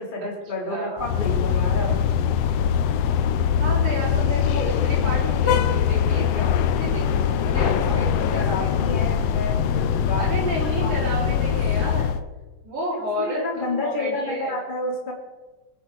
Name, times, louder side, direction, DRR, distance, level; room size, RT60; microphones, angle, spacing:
voice 1, 0.0-2.0 7.8-11.2 12.9-15.1, left 2 dB, 15° left, -1 dB, 2.3 m, -30 dB
voice 2, 0.7-1.0 3.6-8.7 10.2-12.1 12.6-13.5 13.8-14.5, right 1 dB, 85° right, -7 dB, 5.3 m, -31 dB
sound 1, 1.0-12.2, left 8 dB, 75° left, 1.5 m, -22 dB
19.5 x 8.4 x 5.1 m, 1.2 s
omnidirectional pair, 3.4 m